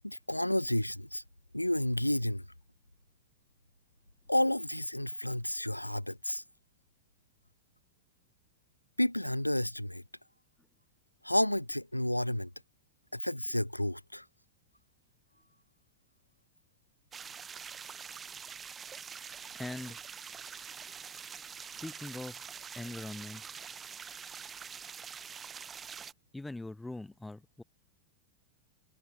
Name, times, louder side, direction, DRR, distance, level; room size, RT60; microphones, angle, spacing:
voice 1, 0.0-1.2 1.5-2.4 4.3-6.4 9.0-10.0 11.2-12.5 13.1-14.3, left 1 dB, 85° left, 0.4 m, -31 dB
sound 1, 17.1-26.1, right 7 dB, 20° right, 0.7 m, -45 dB
voice 2, 19.5-20.0 21.6-22.4 22.7-23.4 26.3-27.6, left 2 dB, 5° left, 1.9 m, -42 dB
figure-of-eight pair, 90°, 0 cm